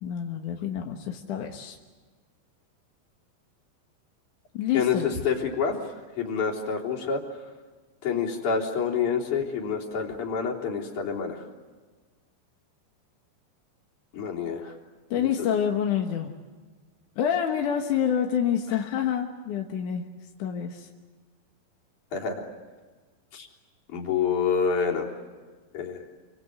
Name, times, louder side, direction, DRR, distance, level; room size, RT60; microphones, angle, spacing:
voice 1, 0.0-1.8 4.5-5.1 15.1-16.3 17.2-20.0 20.4-20.9, left 9 dB, 60° left, 2 dB, 2.3 m, -27 dB
voice 2, 4.7-7.4 8.0-11.4 14.1-14.7 15.1-15.3 18.7-18.8 22.1-22.5 23.3-23.5 23.9-25.1 25.7-26.0, left 6 dB, 45° left, -1 dB, 4.5 m, -28 dB
28.5 x 25.0 x 7.9 m, 1.4 s
omnidirectional pair, 5.1 m